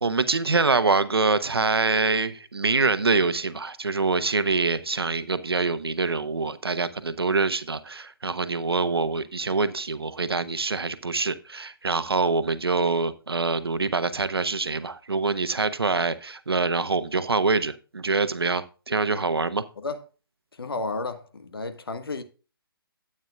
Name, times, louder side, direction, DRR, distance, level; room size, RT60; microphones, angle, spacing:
voice 1, 0.0-19.6, right 3 dB, 85° right, 0.9 m, -25 dB
voice 2, 20.6-22.2, left 3 dB, 75° left, 1.4 m, -32 dB
13.0 x 8.8 x 2.3 m
figure-of-eight pair, 140°, 13 cm